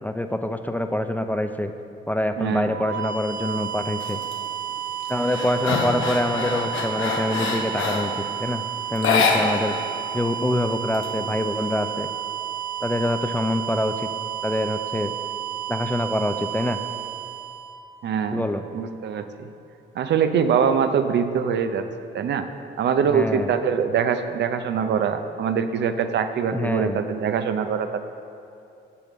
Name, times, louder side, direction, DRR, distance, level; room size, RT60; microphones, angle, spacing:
voice 1, 0.0-1.7 2.1-4.2 5.1-8.1 8.4-8.6 8.9-9.8 10.1-12.1 12.8-14.1 14.4-15.1 15.7-16.8 18.3-18.6 23.1-23.5 26.5-27.0, left 1 dB, 10° left, 7 dB, 0.4 m, -25 dB
voice 2, 2.4-2.7 18.0-18.4 18.7-19.5 19.9-21.8 22.1-22.5 22.8-28.0, right 7 dB, 60° right, 9 dB, 0.6 m, -23 dB
sound 1, 2.6-18.4, right 10 dB, 40° right, 1.2 m, -32 dB
sound 2, 4.0-4.4 4.8-8.2 8.9-9.9 10.2-10.3 10.7-11.6, left 4 dB, 75° left, 1.0 m, -25 dB
7.0 x 6.8 x 7.3 m, 2.6 s
cardioid pair, 90°, 20 cm